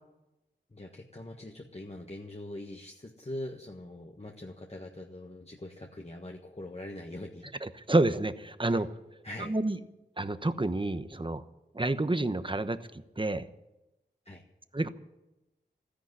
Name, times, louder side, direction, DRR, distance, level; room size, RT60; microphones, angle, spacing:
voice 1, 0.7-7.5 8.7-8.8 9.2-9.5 14.2-14.4, left 1 dB, 35° left, 1 dB, 1.5 m, -42 dB
voice 2, 7.6-8.9 9.5-9.8 10.2-11.4 11.7-13.4 14.7-14.9, right 2 dB, 25° right, 11 dB, 1.0 m, -29 dB
13.5 x 10.5 x 9.8 m, 0.95 s
wide cardioid pair, 45°, 19 cm